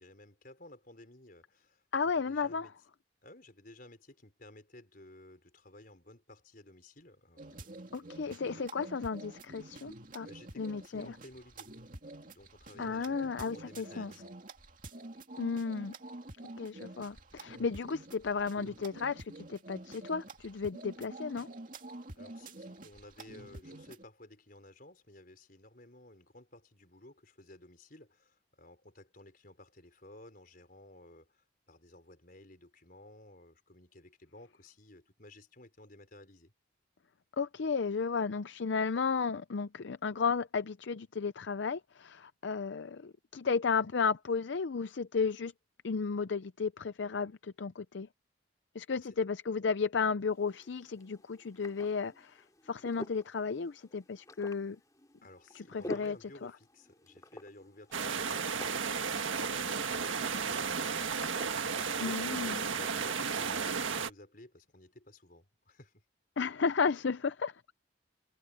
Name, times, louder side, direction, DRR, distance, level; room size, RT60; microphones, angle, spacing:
voice 1, 0.0-1.8 2.1-2.7 3.2-8.9 10.2-11.7 12.2-14.3 22.1-36.5 48.9-49.1 55.2-66.0, left 1 dB, 45° left, 5.0 m, -55 dB
voice 2, 1.9-2.7 7.9-10.3 10.6-11.2 12.8-14.1 15.4-15.9 16.6-21.5 37.3-45.5 45.8-48.1 48.7-54.8 55.5-56.5 62.0-62.6 66.4-67.7, left 5 dB, 65° left, 0.5 m, -34 dB
sound 1, 7.4-24.0, right 2 dB, 40° right, 2.6 m, -48 dB
sound 2, 50.2-63.1, left 1 dB, 15° left, 3.2 m, -50 dB
sound 3, 57.9-64.1, right 5 dB, 80° right, 1.6 m, -33 dB
head